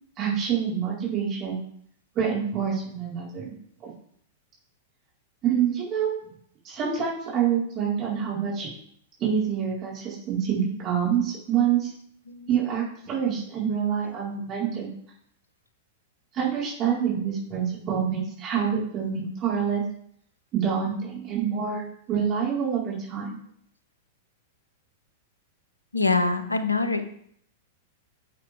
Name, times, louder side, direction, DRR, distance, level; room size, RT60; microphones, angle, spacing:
voice 1, 0.2-1.6 2.1-3.5 3.8-3.9 5.4-6.2 6.6-8.7 9.2-11.9 12.5-14.9 16.3-19.8 20.5-21.8 22.1-23.4, right 8 dB, 35° right, -6 dB, 4.3 m, -26 dB
voice 2, 25.9-27.0, left 4 dB, 85° left, 9 dB, 1.0 m, -24 dB
9.9 x 7.9 x 3.5 m, 0.66 s
figure-of-eight pair, 95°, 0 cm